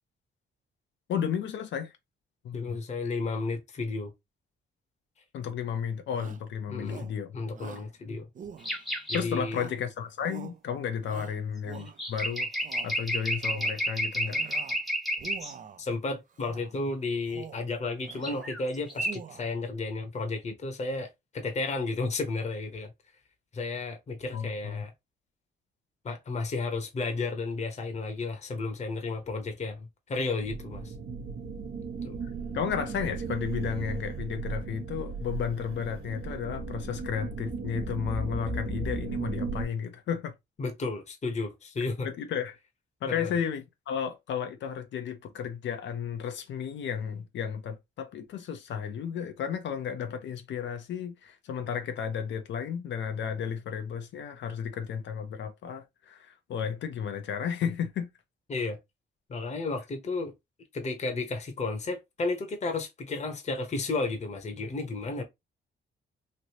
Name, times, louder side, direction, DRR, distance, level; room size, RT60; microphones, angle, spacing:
voice 1, 1.1-1.9 2.4-2.8 5.3-7.3 9.1-12.5 12.8-14.4 24.3-24.8 32.5-40.3 42.0-42.6 43.0-58.1, left 7 dB, 65° left, 0.6 m, -33 dB
voice 2, 2.5-4.1 6.7-7.1 7.3-8.3 9.1-9.6 15.8-22.9 23.5-24.9 26.0-30.9 32.0-32.2 40.6-42.1 43.1-43.3 58.5-58.8 59.3-60.3 60.7-65.2, left 3 dB, 35° left, 0.9 m, -33 dB
Shout, 6.1-6.5 6.9-7.2 7.5-7.9 8.4-9.0 9.5-9.9 10.2-10.6 11.0-12.1 12.5-12.9 13.4-13.8 14.2-14.8 15.1-15.8 16.4-16.7 17.2-17.7 18.0-18.5 18.9-19.6, right 8 dB, 40° right, 0.5 m, -45 dB
sound 1, 8.6-9.3 11.9-15.5 18.1-18.6 18.9-19.2, equal, ahead, 0.8 m, -31 dB
sound 2, 30.4-39.6, right 4 dB, 55° right, 0.9 m, -36 dB
3.2 x 2.6 x 2.8 m
cardioid pair, 90°, 20 cm